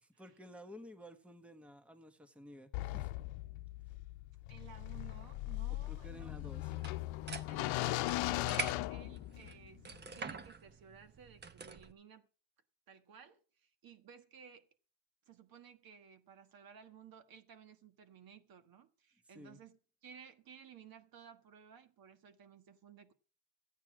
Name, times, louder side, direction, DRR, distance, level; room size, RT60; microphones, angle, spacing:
voice 1, 0.0-3.1 5.9-6.7 19.3-19.6, equal, 5° right, 1.2 m, -53 dB
sound 1, 2.7-9.7, left 18 dB, 85° left, 0.8 m, -38 dB
voice 2, 4.5-6.9 7.3-12.3 12.9-14.7 15.3-23.1, right 7 dB, 50° right, 1.5 m, -57 dB
sound 2, 6.7-11.9, right 5 dB, 20° right, 0.8 m, -46 dB
13.5 x 9.2 x 6.1 m
cardioid pair, 135°, 45 cm